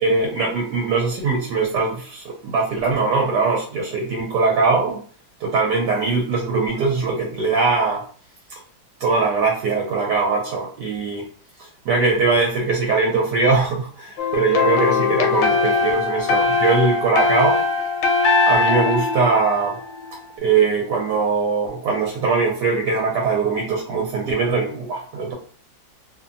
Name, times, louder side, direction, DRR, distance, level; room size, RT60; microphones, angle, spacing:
voice 1, 0.0-5.0 5.4-8.0 9.0-11.3 11.6-17.6 18.5-19.8 20.4-25.3, right 4 dB, 75° right, 0 dB, 1.2 m, -21 dB
sound 1, 14.2-20.2, left 4 dB, 85° left, 1.4 m, -20 dB
2.7 x 2.6 x 2.5 m, 0.43 s
omnidirectional pair, 2.0 m